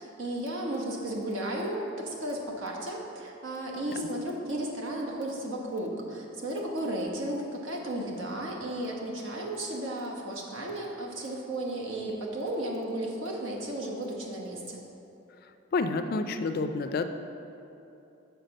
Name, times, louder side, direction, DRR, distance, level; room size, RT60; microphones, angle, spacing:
voice 1, 0.0-14.8, right 1 dB, 75° right, -1 dB, 1.1 m, -34 dB
voice 2, 15.7-17.1, left 3 dB, 45° left, 8 dB, 0.3 m, -29 dB
6.5 x 4.7 x 6.4 m, 2.8 s
head